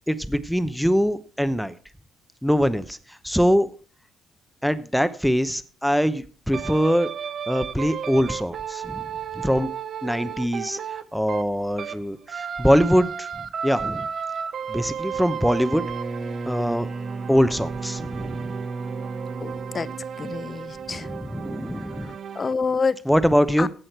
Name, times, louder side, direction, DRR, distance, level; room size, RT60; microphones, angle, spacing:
voice 1, 0.1-1.7 2.4-3.0 3.2-3.7 4.6-7.1 7.5-9.0 9.3-9.7 10.0-10.8 11.1-13.3 13.6-14.1 14.7-15.8 16.5-16.9 17.3-18.6 20.9-22.2 23.1-23.7, equal, ahead, 0.8 m, -23 dB
sound 1, 6.5-12.0 12.3-22.5, right 7 dB, 55° right, 0.6 m, -34 dB
Bowed string instrument, 15.4-20.7, right 3 dB, 35° right, 1.8 m, -34 dB
voice 2, 19.4-21.1 22.3-23.0 23.6-23.7, left 4 dB, 35° left, 0.6 m, -27 dB
16.0 x 6.4 x 4.4 m
cardioid pair, 90°, 0 cm